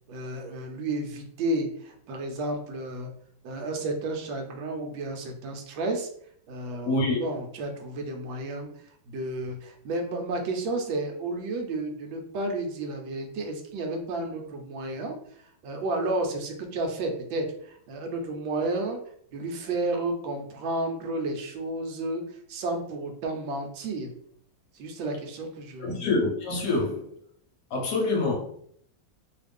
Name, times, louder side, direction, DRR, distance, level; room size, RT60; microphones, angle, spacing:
voice 1, 0.1-3.1 3.4-6.1 6.5-8.7 9.1-15.2 15.6-19.0 19.3-22.2 22.5-24.1 24.8-26.1, right 2 dB, 80° right, 1.4 m, -32 dB
voice 2, 6.8-7.2 25.8-27.1 27.7-28.4, left 2 dB, 70° left, 1.1 m, -26 dB
3.1 x 2.4 x 3.3 m
omnidirectional pair, 2.1 m